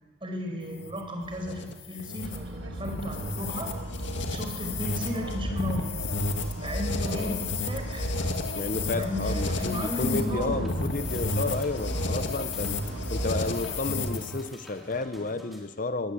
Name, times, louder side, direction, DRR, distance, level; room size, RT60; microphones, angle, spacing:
voice 1, 0.2-3.7 4.3-6.0 6.6-8.1 8.9-10.7, left 1 dB, 25° right, 3 dB, 4.8 m, -34 dB
sound 1, 0.6-14.5, left 2 dB, 70° left, 2.0 m, -32 dB
sound 2, 2.2-13.8, right 1 dB, 90° right, 1.9 m, -40 dB
voice 2, 7.1-7.5 8.5-12.8 13.1-16.1, left 3 dB, 45° left, 11 dB, 0.7 m, -32 dB
sound 3, 9.3-15.6, right 1 dB, ahead, 3.7 m, -45 dB
21.0 x 18.0 x 8.4 m, 1.2 s
head